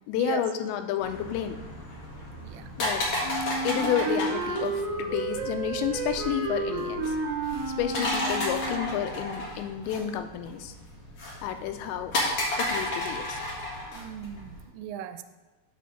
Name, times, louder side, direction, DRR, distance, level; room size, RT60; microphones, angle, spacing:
voice 1, 0.1-1.6 2.8-3.1 3.4-7.2 7.8-10.7 11.4-12.1 12.6-13.4, left 10 dB, 90° left, 7 dB, 2.9 m, -30 dB
sound 1, 1.0-14.6, left 2 dB, 55° left, 2.1 m, -33 dB
voice 2, 2.4-2.7 8.3-8.4 13.9-15.2, right 11 dB, 85° right, 10 dB, 2.8 m, -37 dB
Wind instrument woodwind instrument, 3.2-9.0, right 4 dB, 70° right, 1.5 m, -31 dB
9.3 x 3.4 x 6.4 m, 1.1 s
omnidirectional pair, 5.1 m